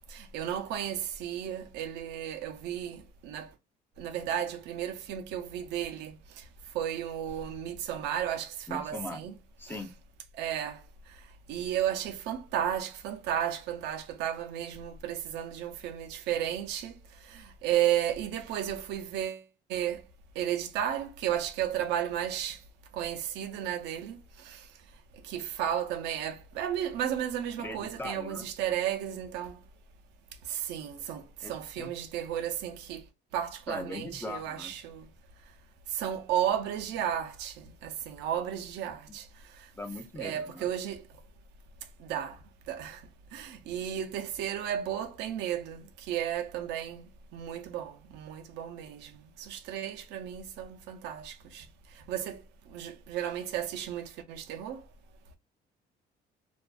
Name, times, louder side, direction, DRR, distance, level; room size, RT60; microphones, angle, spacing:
voice 1, 0.1-3.5 4.0-6.4 6.7-9.3 9.7-9.8 10.3-10.8 11.5-17.0 17.2-19.4 19.7-20.0 20.4-22.6 22.9-24.7 25.2-29.6 30.5-33.0 33.3-35.1 35.9-39.3 40.2-41.0 42.0-42.4 42.7-43.0 43.3-51.7 52.1-52.4 52.7-54.8, right 10 dB, 85° right, 0.5 m, -33 dB
voice 2, 8.7-9.2 9.6-9.9 27.6-28.5 31.4-31.9 33.7-34.7 39.7-40.7, left 2 dB, 10° left, 0.5 m, -40 dB
2.4 x 2.2 x 2.3 m
cardioid pair, 110°, 17 cm